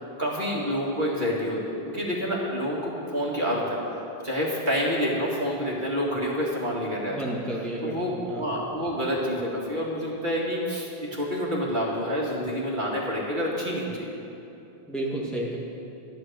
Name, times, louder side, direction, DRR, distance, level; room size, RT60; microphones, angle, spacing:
voice 1, 0.2-3.8 4.2-7.2 7.8-14.2, equal, 50° right, -4 dB, 2.2 m, -28 dB
voice 2, 7.1-8.4 14.9-15.6, right 1 dB, ahead, -4 dB, 1.7 m, -31 dB
13.0 x 6.5 x 9.2 m, 2.8 s
omnidirectional pair, 1.0 m